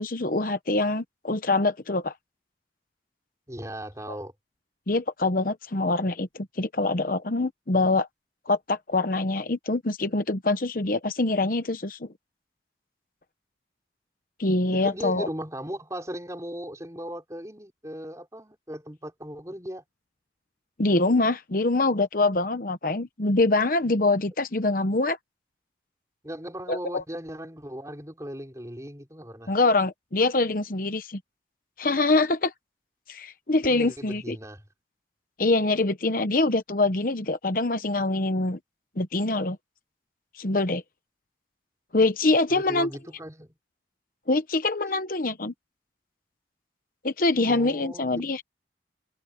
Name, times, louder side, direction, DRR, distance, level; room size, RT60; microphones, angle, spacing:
voice 1, 0.0-2.1 4.9-8.1 8.5-12.1 14.4-15.3 20.8-25.2 26.7-27.0 29.5-31.2 31.8-32.5 33.1-34.4 35.4-38.6 39.0-39.6 40.4-40.8 41.9-42.9 44.3-45.5 47.0-48.4, left 2 dB, 50° left, 0.9 m, -24 dB
voice 2, 3.5-4.3 14.7-19.8 26.2-29.5 33.7-34.6 42.5-43.5 47.5-48.3, equal, 15° right, 4.9 m, -37 dB
head